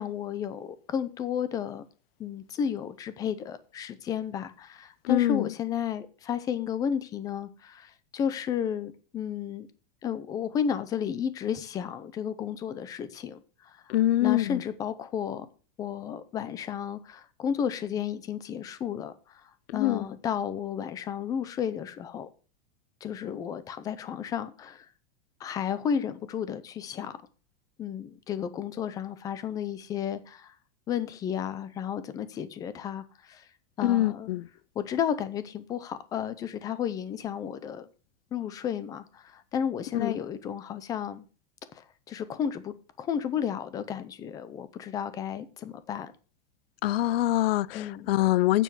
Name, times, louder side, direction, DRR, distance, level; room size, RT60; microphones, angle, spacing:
voice 1, 0.0-1.9 2.2-9.7 10.0-15.5 15.8-19.1 19.7-22.3 23.0-24.9 25.4-27.2 27.8-30.5 30.9-33.4 33.8-34.3 34.8-37.9 38.3-41.2 41.7-46.1 47.7-48.1, left 8 dB, 10° left, 0.5 m, -33 dB
voice 2, 5.1-5.5 13.9-14.6 19.7-20.0 33.8-34.4 40.0-40.2 46.8-47.8 48.1-48.6, left 15 dB, 85° left, 0.6 m, -24 dB
9.2 x 6.9 x 6.1 m
supercardioid pair, 175°, 29 cm